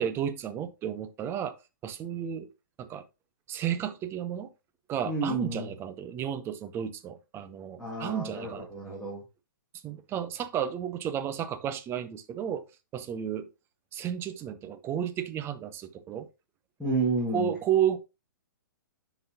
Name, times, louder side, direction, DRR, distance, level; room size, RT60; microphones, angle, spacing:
voice 1, 0.0-1.5 1.8-2.5 2.8-3.0 3.5-4.5 4.9-8.7 9.8-12.6 12.9-13.5 13.9-16.3 17.3-18.0, right 9 dB, 20° right, 0.6 m, -32 dB
voice 2, 5.0-5.7 7.8-9.2 16.8-17.5, right 2 dB, ahead, 2.0 m, -31 dB
10.5 x 4.1 x 2.7 m
figure-of-eight pair, 120°, 11 cm